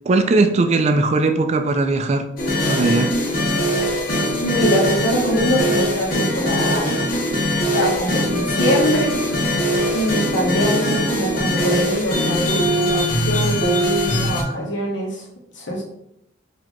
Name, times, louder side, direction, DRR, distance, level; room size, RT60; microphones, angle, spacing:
voice 1, 0.1-2.3 2.7-3.1, right 3 dB, 35° right, 7 dB, 0.3 m, -18 dB
sound 1, 2.4-14.4, equal, 50° left, 0.9 m, -21 dB
voice 2, 4.4-7.2 7.7-9.1 9.9-15.2 15.5-15.8, equal, 85° left, -2 dB, 1.2 m, -23 dB
4.1 x 2.8 x 3.0 m, 0.77 s
head